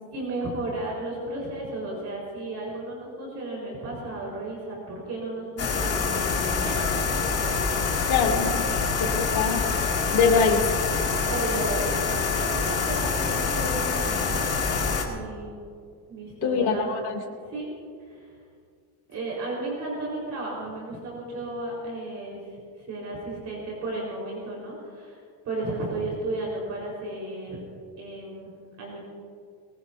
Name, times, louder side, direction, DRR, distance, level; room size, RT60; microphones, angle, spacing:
voice 1, 0.1-6.9 7.9-8.1 11.3-11.8 12.5-14.4 15.0-15.5 16.1-17.7 18.0-18.3 19.1-22.4 22.8-25.2 25.4-27.6 28.0-28.5 28.8-29.0, right 2 dB, 40° right, -4 dB, 4.6 m, -34 dB
sound 1, 5.6-15.0, left 4 dB, 35° left, 2.5 m, -26 dB
voice 2, 8.1-8.6 9.0-9.6 10.1-10.6 16.4-17.1, left 5 dB, 65° left, 2 dB, 2.7 m, -23 dB
22.5 x 20.5 x 2.7 m, 2.2 s
cardioid pair, 165°, 41 cm